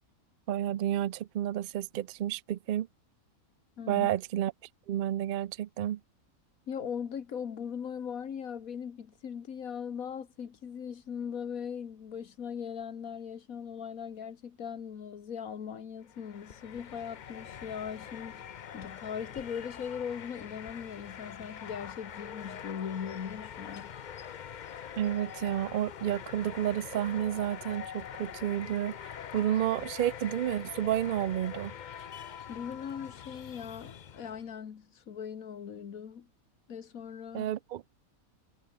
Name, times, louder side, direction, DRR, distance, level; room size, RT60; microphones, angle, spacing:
voice 1, 0.5-2.9 3.9-4.5 4.9-6.0 25.0-31.7 37.3-37.8, right 12 dB, 85° right, 0.4 m, -31 dB
voice 2, 3.8-4.1 6.7-18.5 18.7-23.9 32.5-36.3 36.7-37.5, left 7 dB, 75° left, 1.8 m, -39 dB
sound 1, 16.0-34.5, left 8 dB, 55° left, 0.5 m, -44 dB
omnidirectional pair, 1.5 m